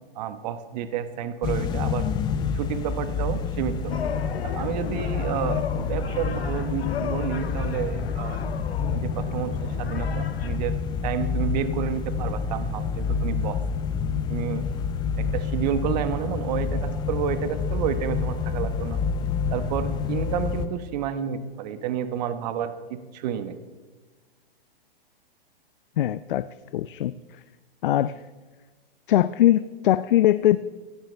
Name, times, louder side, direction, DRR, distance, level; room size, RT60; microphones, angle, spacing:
voice 1, 0.1-2.1 2.5-3.9 4.4-8.4 8.9-13.6 14.3-14.7 15.2-19.0 19.5-23.6, right 9 dB, 45° right, 10 dB, 1.3 m, -30 dB
sound 1, 1.4-20.7, left 5 dB, 15° left, 0.6 m, -28 dB
sound 2, 3.9-10.6, left 7 dB, 80° left, 1.5 m, -35 dB
voice 2, 26.0-26.5 26.7-27.1 27.8-28.1 29.1-30.6, left 13 dB, 60° left, 15 dB, 0.6 m, -21 dB
16.5 x 16.0 x 3.4 m, 1.3 s
hypercardioid pair, 140°, 30 cm